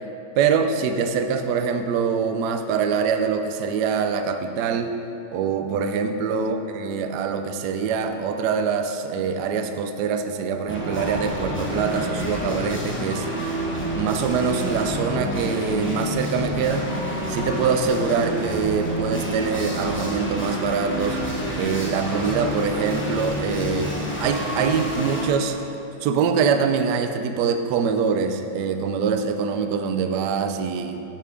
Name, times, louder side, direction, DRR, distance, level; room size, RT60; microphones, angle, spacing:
voice 1, 0.4-4.9 5.3-13.3 13.9-16.9 17.3-21.2 21.5-23.9 24.2-25.6 26.0-31.0, right 6 dB, 75° right, 6 dB, 1.1 m, -24 dB
sound 1, 10.7-25.3, equal, 10° left, 0.9 m, -28 dB
9.5 x 4.5 x 4.9 m, 2.8 s
omnidirectional pair, 1.9 m